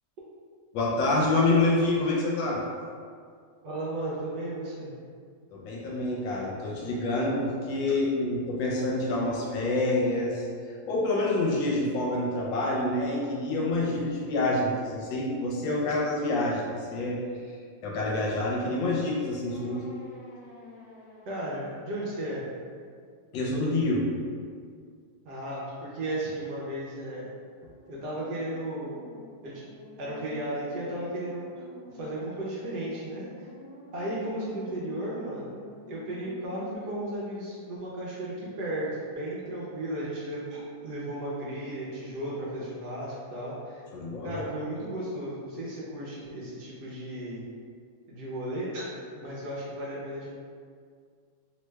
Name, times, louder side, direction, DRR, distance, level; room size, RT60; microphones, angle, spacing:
voice 1, 0.7-2.6 5.5-17.2 17.8-19.9 23.3-24.1 43.9-44.4, left 2 dB, 80° left, -3 dB, 1.3 m, -27 dB
voice 2, 3.6-4.9 21.3-22.4 25.2-27.3 27.9-29.0 29.4-29.6 30.0-31.5 31.9-33.5 33.9-35.6 35.9-43.8 44.2-47.4 48.1-48.8 49.2-50.3, right 1 dB, 70° right, -6 dB, 1.1 m, -34 dB
sound 1, 19.5-21.9 27.6-36.8, left 2 dB, 65° left, 0.5 m, -49 dB
3.3 x 2.2 x 3.1 m, 2.1 s
omnidirectional pair, 2.1 m